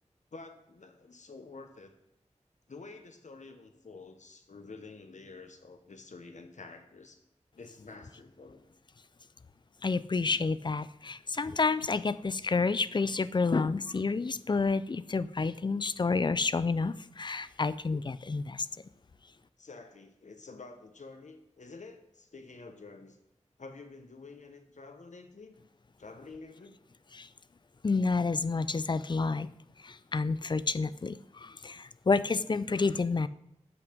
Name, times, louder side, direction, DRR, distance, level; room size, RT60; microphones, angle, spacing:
voice 1, 0.3-1.9 2.7-7.2 7.6-8.7 19.6-23.2 23.6-25.6 26.0-26.8, left 3 dB, 80° left, 6 dB, 1.0 m, -49 dB
voice 2, 9.8-18.7 27.1-27.3 27.8-29.5 29.8-33.3, left 4 dB, 40° left, 16 dB, 0.4 m, -29 dB
8.1 x 5.8 x 5.1 m, 0.81 s
wide cardioid pair, 70°, 12 cm